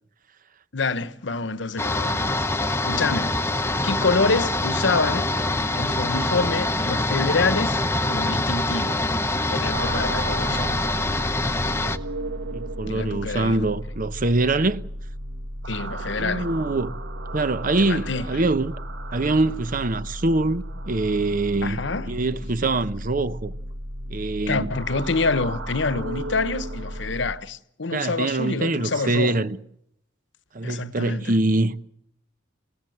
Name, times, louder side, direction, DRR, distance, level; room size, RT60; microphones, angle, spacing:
voice 1, 0.7-2.4 2.8-3.5 3.8-5.3 5.7-9.0 9.5-10.8 12.8-13.7 15.7-16.5 17.8-18.2 21.6-22.2 24.5-29.4 30.6-31.3, left 3 dB, 65° left, 1.0 m, -27 dB
sound 1, 1.8-12.0, left 2 dB, 15° left, 0.9 m, -24 dB
sound 2, 9.7-27.3, right 1 dB, 85° right, 1.7 m, -34 dB
voice 2, 12.5-14.8 16.2-17.0 17.3-18.7 19.1-23.5 24.1-24.7 27.9-29.6 30.5-31.7, right 2 dB, 45° right, 0.9 m, -24 dB
27.5 x 17.5 x 7.9 m
head